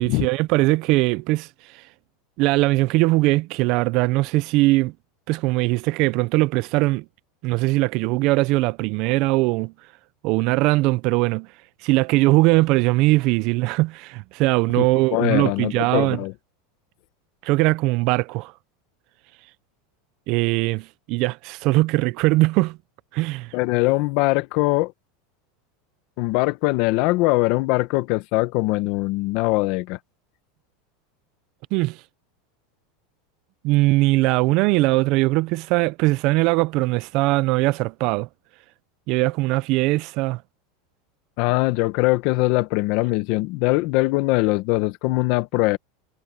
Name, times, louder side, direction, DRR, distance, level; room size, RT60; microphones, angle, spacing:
voice 1, 0.0-1.8 2.4-4.9 5.3-7.1 7.4-9.7 10.2-11.5 11.8-16.2 17.4-18.5 20.3-22.8 23.1-23.5 31.7-32.0 33.6-38.3 39.1-40.4, right 21 dB, 40° right, 0.4 m, -20 dB
voice 2, 15.1-16.3 23.5-24.9 26.2-30.0 41.4-45.8, left 21 dB, 45° left, 0.8 m, -21 dB
supercardioid pair, 170°, 0 cm